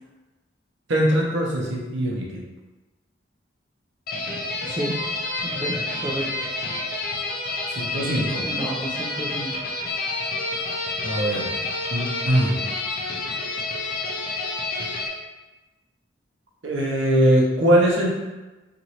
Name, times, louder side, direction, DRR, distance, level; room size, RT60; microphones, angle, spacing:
voice 1, 0.9-2.4 7.7-8.5 11.0-11.5 11.9-12.6 16.6-18.1, right 1 dB, 70° right, -2 dB, 0.7 m, -21 dB
sound 1, 4.1-15.1, left 2 dB, 55° left, 0.5 m, -29 dB
voice 2, 4.6-5.2 5.4-6.5 8.4-9.7, right 1 dB, 25° right, -4 dB, 0.4 m, -31 dB
3.0 x 2.5 x 2.8 m, 1.1 s
head